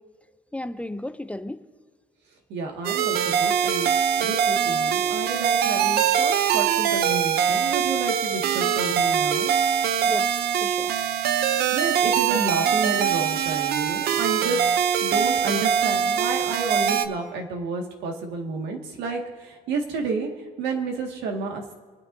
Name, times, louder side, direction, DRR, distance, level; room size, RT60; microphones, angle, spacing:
voice 1, 0.5-1.6 10.0-10.9, left 1 dB, 5° left, 10 dB, 0.5 m, -34 dB
voice 2, 2.5-9.5 11.7-14.6 15.0-21.7, right 3 dB, 85° right, 2 dB, 1.9 m, -30 dB
sound 1, 2.8-17.1, right 8 dB, 70° right, 0.6 m, -23 dB
26.0 x 9.6 x 2.7 m, 1.5 s
cardioid pair, 110°, 17 cm